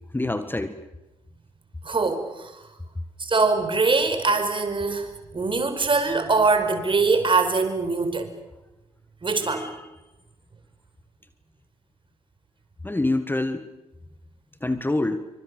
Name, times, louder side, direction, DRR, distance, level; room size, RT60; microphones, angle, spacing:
voice 1, 0.1-0.8 9.4-9.9 12.8-13.7 14.6-15.3, left 2 dB, 15° left, 11 dB, 1.7 m, -26 dB
voice 2, 1.8-2.6 3.2-8.3 9.2-9.7, right 3 dB, 35° right, 8 dB, 4.9 m, -23 dB
27.5 x 25.0 x 6.9 m, 0.97 s
hypercardioid pair, 45°, 16 cm